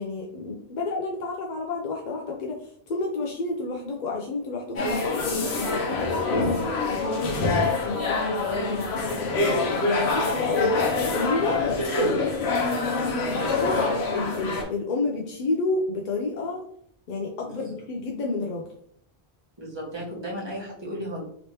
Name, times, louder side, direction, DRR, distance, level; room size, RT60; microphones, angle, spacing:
voice 1, 0.0-12.3 13.3-13.7 14.1-16.6 17.1-18.7, left 3 dB, 60° left, 0 dB, 0.6 m, -30 dB
sound 1, 4.8-14.6, left 3 dB, 80° left, 1.0 m, -25 dB
voice 2, 13.3-13.7 14.1-14.4 17.5-17.8 19.6-21.2, equal, 25° right, -4 dB, 1.1 m, -35 dB
3.2 x 3.0 x 2.8 m, 0.64 s
omnidirectional pair, 1.1 m